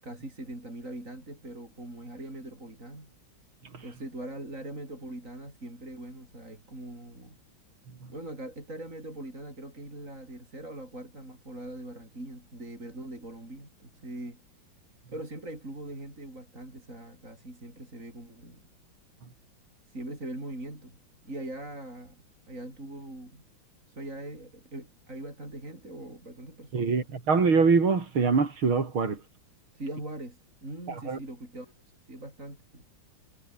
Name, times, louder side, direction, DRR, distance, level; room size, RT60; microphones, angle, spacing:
voice 1, 0.0-3.1 3.8-7.4 8.1-14.4 15.1-18.6 19.9-21.0 21.2-23.4 23.9-27.1 29.7-31.7 32.1-32.8, right 1 dB, 35° right, 8.0 m, -41 dB
voice 2, 26.7-29.2 30.9-31.2, right 5 dB, 85° right, 4.3 m, -24 dB
omnidirectional pair, 2.2 m